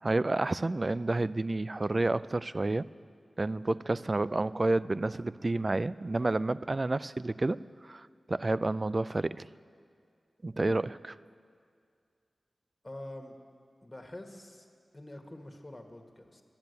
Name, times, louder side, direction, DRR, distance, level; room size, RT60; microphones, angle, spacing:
voice 1, 0.0-2.9 3.4-9.5 10.4-11.2, right 2 dB, 45° right, 17 dB, 0.3 m, -30 dB
voice 2, 12.8-13.4 13.8-14.7 14.9-16.4, left 1 dB, 30° left, 3 dB, 1.6 m, -46 dB
12.0 x 10.5 x 8.0 m, 2.2 s
cardioid pair, 50°, 0 cm